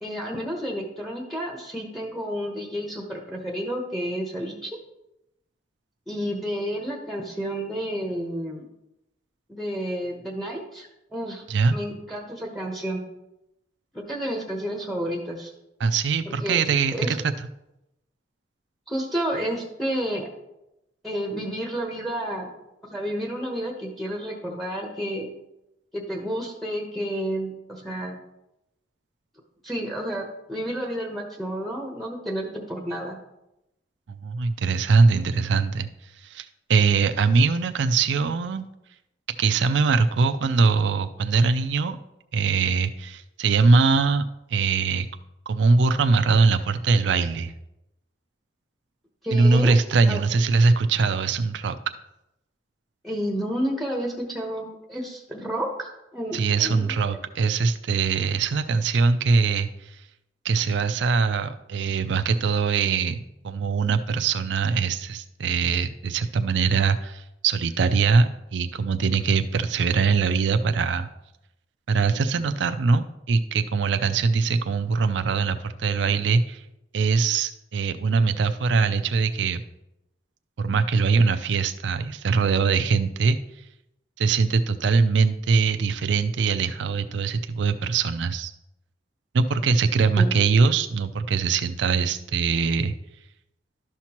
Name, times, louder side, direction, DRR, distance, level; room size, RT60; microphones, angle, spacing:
voice 1, 0.0-4.8 6.1-8.6 9.5-11.4 11.7-13.0 13.9-15.5 16.3-16.6 16.9-17.1 18.9-20.3 21.0-22.5 22.9-25.3 25.9-28.2 29.6-33.2 49.2-49.7 50.1-50.2 53.0-56.9 90.2-90.3, equal, ahead, 0 dB, 1.0 m, -30 dB
voice 2, 15.8-17.2 34.2-35.9 36.2-38.7 39.4-42.0 42.3-44.2 44.5-45.1 45.5-47.5 49.3-51.8 56.3-59.9 60.4-71.1 71.9-76.6 76.9-79.6 80.6-83.4 84.2-88.5 89.3-92.9, right 4 dB, 70° right, 9 dB, 0.4 m, -22 dB
12.0 x 5.9 x 2.9 m, 0.89 s
head